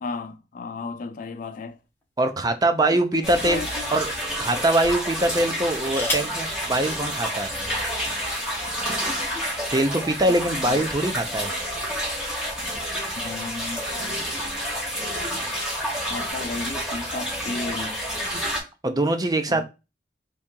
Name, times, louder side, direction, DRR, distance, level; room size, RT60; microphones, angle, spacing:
voice 1, 0.0-1.8 2.9-3.9 10.3-10.4 10.7-10.9 13.2-13.8 16.1-18.0 19.5-19.6, left 4 dB, 50° left, 0.4 m, -34 dB
sound 1, 1.7-2.9 3.6-3.8 5.4-6.5 7.6-7.7 8.0-8.4, left 1 dB, 15° left, 1.0 m, -33 dB
voice 2, 2.2-3.6 3.9-4.1 4.4-7.5 9.7-11.5 18.8-19.6, right 1 dB, 20° right, 0.5 m, -23 dB
sound 2, 3.2-18.6, equal, 5° right, 1.3 m, -29 dB
3.5 x 2.8 x 3.6 m
head